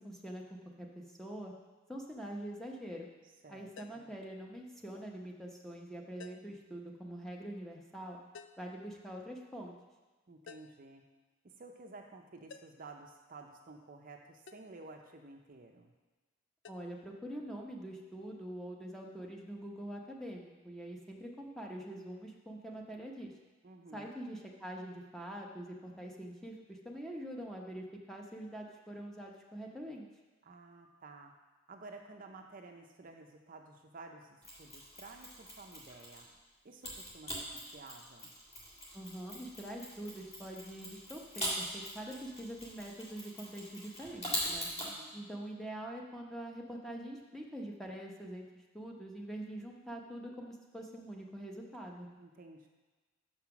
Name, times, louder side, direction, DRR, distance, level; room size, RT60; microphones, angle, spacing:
voice 1, 0.0-1.5 1.9-3.1 3.5-8.2 8.6-9.7 16.7-23.3 23.9-30.1 38.9-44.7 45.1-48.5 48.7-52.1, right 1 dB, ahead, -1 dB, 0.8 m, -44 dB
Buttons Sci-Fi (Multi One Shot), 3.8-4.2 6.2-6.6 8.3-8.7 10.5-10.9 12.5-12.9 14.5-14.7 16.6-16.8, left 5 dB, 60° left, 0.4 m, -53 dB
voice 2, 10.3-11.0 11.4-15.9 23.6-24.1 30.4-31.3 31.7-36.3 36.6-38.3 44.8-45.2 52.2-52.7, right 3 dB, 45° right, 3 dB, 0.6 m, -52 dB
Mechanisms, 34.4-36.3 36.8-44.9, equal, 30° left, 2.1 m, -42 dB
6.9 x 5.7 x 5.8 m, 1.3 s
head